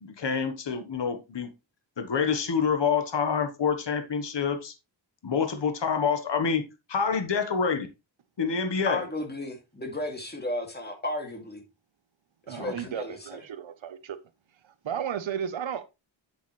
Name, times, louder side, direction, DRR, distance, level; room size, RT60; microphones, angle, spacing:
voice 1, 0.0-1.5 2.0-4.7 5.2-6.6 6.9-7.9 8.4-9.0 12.6-12.7, left 6 dB, 60° left, 1.3 m, -27 dB
voice 2, 8.9-11.6 12.5-13.2, left 1 dB, 20° left, 2.5 m, -33 dB
voice 3, 12.5-14.2 14.6-15.8, right 8 dB, 75° right, 0.8 m, -34 dB
8.3 x 7.0 x 3.2 m
wide cardioid pair, 85°, 47 cm